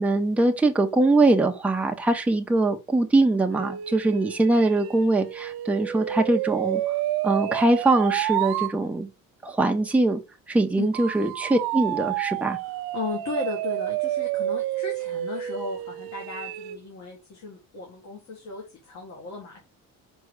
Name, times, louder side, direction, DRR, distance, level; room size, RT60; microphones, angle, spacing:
voice 1, 0.0-6.8 7.2-9.1 9.4-10.2 10.5-12.6, right 2 dB, 5° right, 0.6 m, -22 dB
sound 1, 3.5-8.7 10.9-16.8, right 14 dB, 75° right, 0.7 m, -30 dB
voice 2, 12.6-19.7, left 3 dB, 45° left, 2.0 m, -36 dB
5.4 x 4.6 x 4.8 m
cardioid pair, 175°, 37 cm